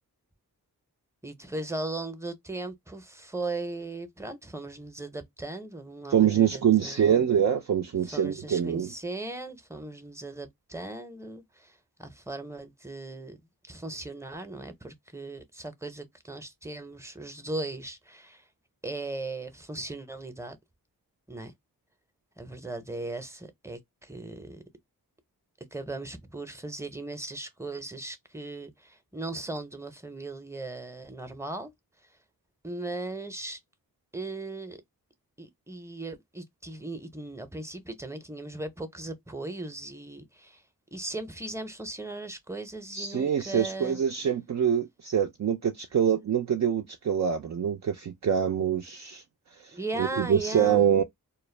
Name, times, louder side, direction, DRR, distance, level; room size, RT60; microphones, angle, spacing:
voice 1, 1.2-7.3 8.0-13.4 13.7-18.4 18.8-20.6 21.3-21.5 22.4-24.6 25.7-31.7 32.6-33.6 34.1-34.8 35.4-40.6 40.9-44.0 49.7-50.8, right 2 dB, 5° right, 0.7 m, -38 dB
voice 2, 6.1-8.9 42.9-49.2 49.6-51.0, right 8 dB, 50° right, 0.4 m, -25 dB
2.2 x 2.0 x 3.2 m
cardioid pair, 45°, 38 cm